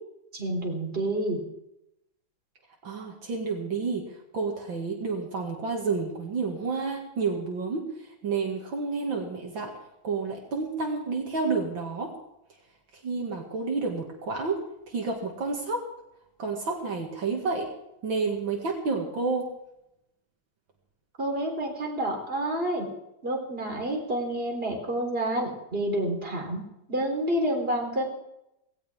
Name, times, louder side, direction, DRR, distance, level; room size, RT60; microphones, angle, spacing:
voice 1, 0.3-1.4 21.2-22.9 23.2-26.6 26.9-28.0, right 1 dB, 25° right, 0 dB, 4.1 m, -29 dB
voice 2, 2.8-7.9 8.2-9.7 10.0-12.1 13.0-14.6 14.9-15.8 16.4-17.7 18.0-19.5, right 4 dB, 70° right, 0 dB, 2.8 m, -30 dB
18.5 x 17.5 x 3.7 m, 0.85 s
omnidirectional pair, 2.2 m